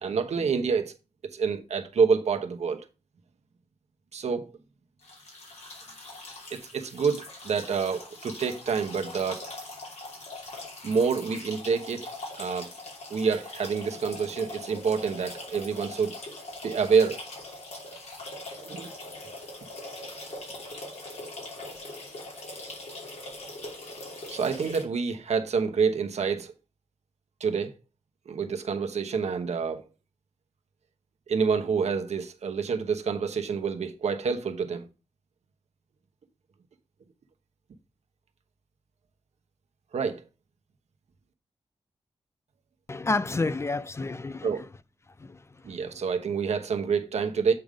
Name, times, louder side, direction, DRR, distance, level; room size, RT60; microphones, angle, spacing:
voice 1, 0.0-0.9 1.3-2.8 4.1-4.5 6.5-9.5 10.8-12.1 12.4-12.7 13.1-16.2 16.6-17.2 18.6-18.9 24.3-26.5 27.4-27.7 28.3-29.8 31.3-34.9 39.9-40.2 44.4-44.7 45.6-47.5, right 5 dB, 80° right, 1.0 m, -27 dB
sound 1, 5.0-24.8, left 2 dB, 80° left, 2.9 m, -42 dB
voice 2, 42.9-44.5 45.2-45.9, left 3 dB, 25° left, 0.4 m, -30 dB
7.8 x 3.6 x 5.0 m
wide cardioid pair, 105°, 11 cm